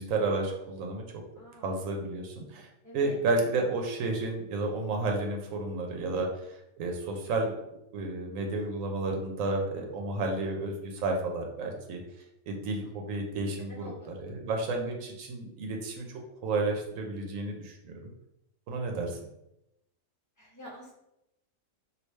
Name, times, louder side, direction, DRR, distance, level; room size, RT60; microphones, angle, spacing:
voice 1, 0.0-1.2 1.6-2.7 2.9-7.6 7.9-12.0 12.5-18.1 18.7-19.2, right 2 dB, 80° right, 2 dB, 1.0 m, -32 dB
voice 2, 1.4-1.8 2.8-3.2 13.7-14.4 20.4-20.9, equal, 15° left, -5 dB, 0.9 m, -48 dB
3.2 x 2.6 x 3.1 m, 0.84 s
omnidirectional pair, 1.3 m